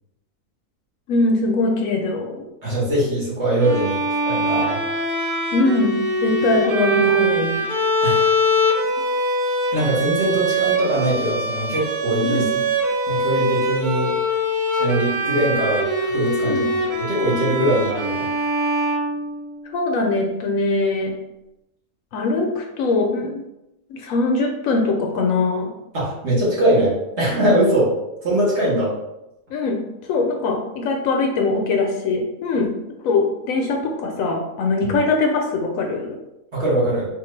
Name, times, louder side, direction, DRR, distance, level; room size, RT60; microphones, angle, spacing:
voice 1, 1.1-2.4 5.5-7.6 12.2-12.5 16.4-16.7 19.7-21.1 22.1-23.4 23.9-25.7 29.5-29.8 30.1-32.7 33.0-36.2, left 3 dB, 70° left, 2 dB, 0.9 m, -22 dB
voice 2, 2.6-4.0 4.3-4.8 8.0-8.3 9.7-12.4 13.1-14.1 14.8-18.3 25.9-27.9 28.2-28.9 34.8-34.9 36.5-37.1, right 1 dB, 50° right, -7 dB, 1.6 m, -21 dB
Bowed string instrument, 3.6-19.7, equal, 85° right, 0.4 m, -22 dB
4.3 x 2.5 x 3.1 m, 0.91 s
omnidirectional pair, 1.6 m